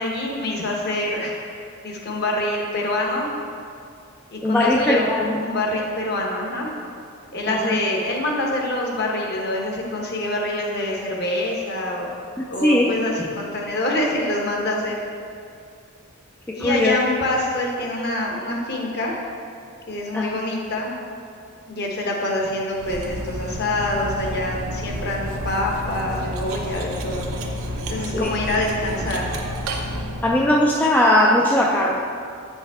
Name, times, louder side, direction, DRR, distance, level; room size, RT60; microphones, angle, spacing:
voice 1, 0.0-3.3 4.3-6.8 7.3-12.1 12.5-15.0 16.5-19.2 19.9-20.9 21.7-27.3 27.9-29.3, left 1 dB, 50° left, -1 dB, 1.0 m, -25 dB
voice 2, 4.4-5.4 7.5-7.8 12.6-13.0 16.5-17.0 20.1-20.3 28.1-28.3 30.2-32.0, left 1 dB, 10° left, -2 dB, 0.3 m, -19 dB
Cutlery silverware, 22.8-30.5, equal, 85° right, 0.7 m, -30 dB
8.3 x 5.4 x 3.5 m, 2.4 s
head